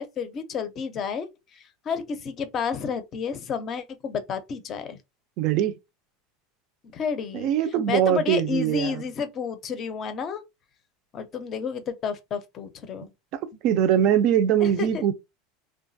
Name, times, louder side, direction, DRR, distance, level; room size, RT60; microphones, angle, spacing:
voice 1, 0.0-5.0 6.9-7.5 7.9-10.4 11.1-13.1 14.6-15.0, left 6 dB, 30° left, 0.5 m, -31 dB
voice 2, 5.4-5.7 7.3-8.9 13.6-15.1, right 10 dB, 50° right, 0.4 m, -22 dB
3.1 x 2.2 x 2.6 m
supercardioid pair, 150°, 0 cm